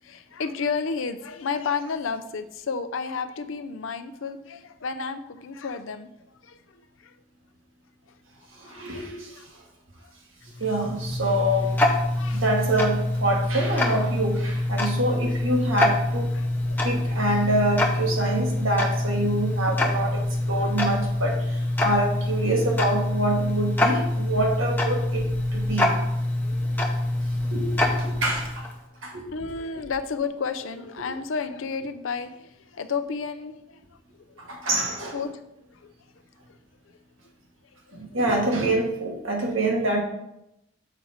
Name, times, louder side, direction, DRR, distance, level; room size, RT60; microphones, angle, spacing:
voice 1, 0.0-7.2 8.7-9.5 12.2-12.4 16.3-17.2 20.6-20.8 22.4-22.5 26.4-26.8 29.3-34.4 34.9-35.4 35.7-35.9 36.5-36.6 37.9-38.1, left 5 dB, 75° left, 10 dB, 0.5 m, -32 dB
voice 2, 8.5-9.4 10.6-11.8 12.3-16.3 16.8-25.2 25.5-26.0 27.5-28.7 29.0-29.4 34.4-35.1 37.9-40.0, right 1 dB, 75° right, 0 dB, 1.6 m, -26 dB
Tick-tock, 10.5-28.8, left 1 dB, 10° left, 0.7 m, -25 dB
6.9 x 4.8 x 4.3 m, 0.84 s
head